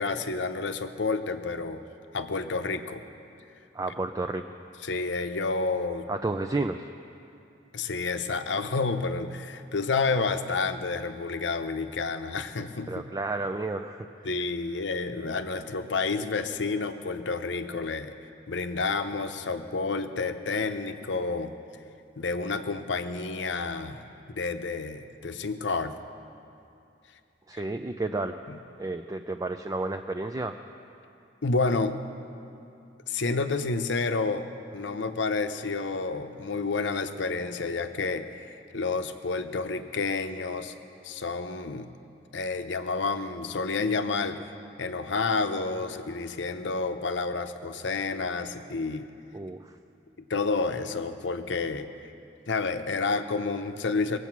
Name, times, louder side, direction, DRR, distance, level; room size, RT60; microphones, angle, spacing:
voice 1, 0.0-1.8 2.1-3.0 4.8-6.1 7.7-12.9 14.2-18.1 18.5-21.5 22.2-25.9 27.5-27.6 28.5-28.6 31.4-32.0 33.1-34.5 34.7-40.7 41.0-41.9 42.3-44.4 44.8-49.1 50.3-51.9 52.5-54.2, left 4 dB, 80° left, 8 dB, 0.7 m, -30 dB
voice 2, 3.7-4.4 6.1-6.8 12.9-14.1 27.5-28.4 28.8-30.6 49.3-49.7, right 2 dB, 20° right, 6 dB, 0.3 m, -31 dB
21.5 x 8.2 x 6.0 m, 2.6 s
head